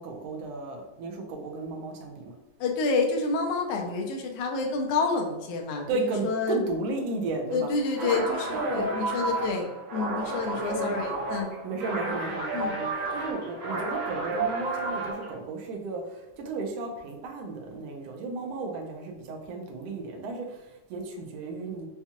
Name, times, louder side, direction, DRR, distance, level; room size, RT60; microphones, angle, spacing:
voice 1, 0.0-2.3 5.9-7.7 8.0-8.2 8.5-8.8 10.6-11.0 11.6-21.9, right 3 dB, 75° right, 1 dB, 1.5 m, -34 dB
voice 2, 2.6-6.6 7.5-11.5 12.5-12.8, left 4 dB, 80° left, 2 dB, 2.0 m, -29 dB
sound 1, 7.9-15.3, right 2 dB, 60° right, 1.1 m, -31 dB
5.7 x 2.3 x 2.9 m, 1.0 s
omnidirectional pair, 3.6 m